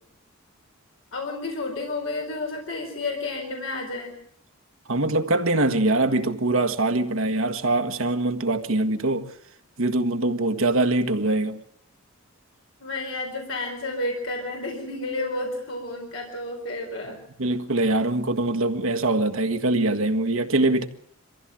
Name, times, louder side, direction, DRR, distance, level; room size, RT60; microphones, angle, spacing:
voice 1, 1.1-4.1 12.8-17.2, left 2 dB, 65° left, 4.5 m, -31 dB
voice 2, 4.9-9.3 9.8-11.6 17.4-20.9, right 2 dB, 70° right, 1.6 m, -23 dB
24.0 x 15.5 x 7.8 m
head